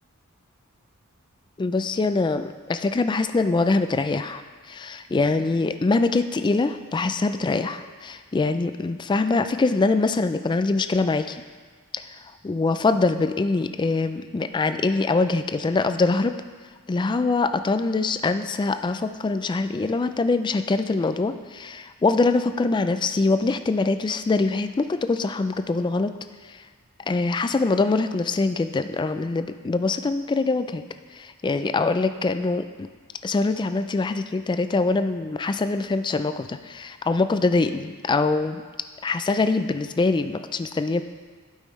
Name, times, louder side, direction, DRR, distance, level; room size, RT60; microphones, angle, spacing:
voice 1, 1.6-11.4 11.9-16.3 16.9-26.1 26.5-26.6 27.1-30.8 31.1-32.9 33.2-38.6 39.0-41.0, left 3 dB, 20° left, 10 dB, 0.3 m, -24 dB
12.0 x 5.6 x 3.1 m, 1.5 s
head